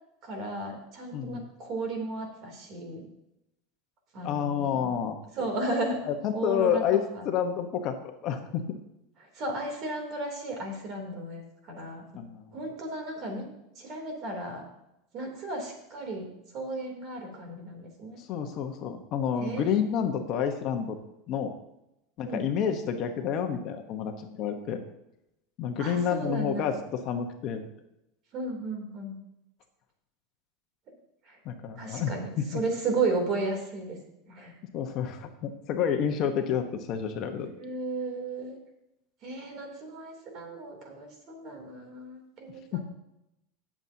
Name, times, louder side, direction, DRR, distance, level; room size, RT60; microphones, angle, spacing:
voice 1, 0.2-3.1 4.1-5.0 5.3-6.0 6.3-6.8 7.1-7.3 9.2-12.0 12.5-13.5 13.7-14.7 15.1-16.3 16.5-18.2 19.4-19.6 22.2-22.7 25.8-26.7 28.3-29.2 31.2-31.4 31.7-34.0 34.2-34.5 37.6-38.6 39.2-42.8, right 2 dB, 40° right, 2 dB, 3.0 m, -34 dB
voice 2, 1.1-1.4 4.2-5.2 6.1-8.0 8.2-8.6 12.1-12.5 18.2-21.0 21.3-21.5 22.2-24.8 25.6-27.6 31.4-32.1 34.7-37.5 42.7-42.8, left 8 dB, 45° left, 5 dB, 1.1 m, -29 dB
18.0 x 7.3 x 2.8 m, 0.86 s
supercardioid pair, 145°, 0 cm